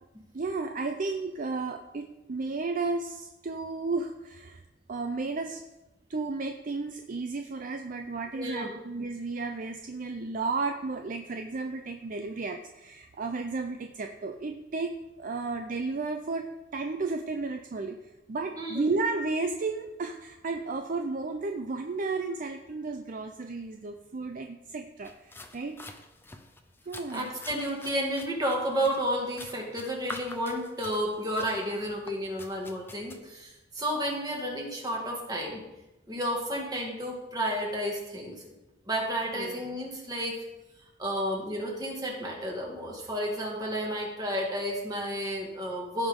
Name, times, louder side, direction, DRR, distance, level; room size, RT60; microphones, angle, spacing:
voice 1, 0.3-4.6 4.9-5.6 6.1-18.0 18.3-25.8 26.9-27.3 39.3-39.6, right 3 dB, 50° right, 5 dB, 0.5 m, -33 dB
voice 2, 8.3-8.7 18.6-18.9 27.1-35.6 36.1-38.4 38.9-40.4 41.0-46.1, equal, 20° right, -1 dB, 2.1 m, -31 dB
sound 1, 25.0-33.2, left 2 dB, 15° left, 0.6 m, -47 dB
15.5 x 5.2 x 3.7 m, 1.0 s
head